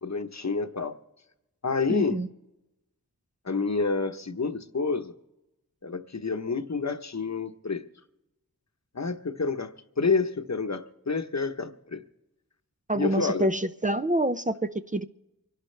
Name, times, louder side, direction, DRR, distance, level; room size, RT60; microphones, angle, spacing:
voice 1, 0.0-1.0 1.6-2.2 3.4-5.1 5.8-7.8 8.9-12.0 12.9-13.5, left 4 dB, 50° left, 1.0 m, -29 dB
voice 2, 1.9-2.3 12.9-15.0, right 1 dB, 25° right, 0.5 m, -26 dB
26.0 x 11.5 x 3.3 m
wide cardioid pair, 60°, 35 cm